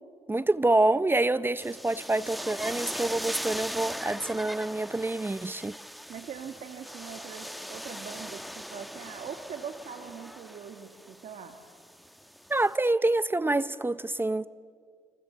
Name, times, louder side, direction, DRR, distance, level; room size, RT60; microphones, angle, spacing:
voice 1, 0.3-5.8 12.5-14.5, right 2 dB, 15° right, 0.7 m, -26 dB
sound 1, 1.6-12.7, equal, ahead, 1.1 m, -40 dB
voice 2, 6.1-11.6, right 7 dB, 70° right, 1.8 m, -42 dB
29.0 x 26.0 x 7.9 m
cardioid pair, 80°, 13 cm